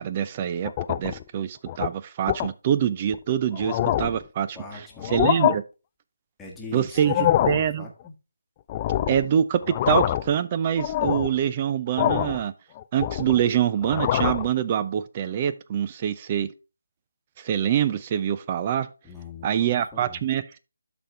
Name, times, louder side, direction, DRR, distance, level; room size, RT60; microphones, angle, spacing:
voice 1, 0.0-4.6 5.0-5.6 6.7-7.9 9.1-9.6 9.9-12.5 12.9-16.5 17.4-18.9 19.4-20.6, right 9 dB, 30° right, 0.6 m, -25 dB
sound 1, 0.6-1.2 1.7-1.9 2.3-2.5 3.1-3.2 3.5-4.2 5.0-5.5 7.0-7.6 8.7-9.3 9.6-10.3 10.8-11.3 12.0-12.4 12.8-13.5 13.8-14.5, left 12 dB, 25° left, 0.3 m, -24 dB
voice 2, 4.5-5.1 6.4-8.1 19.0-20.2, left 3 dB, 5° left, 1.6 m, -41 dB
12.5 x 4.4 x 3.4 m
figure-of-eight pair, 155°, 0 cm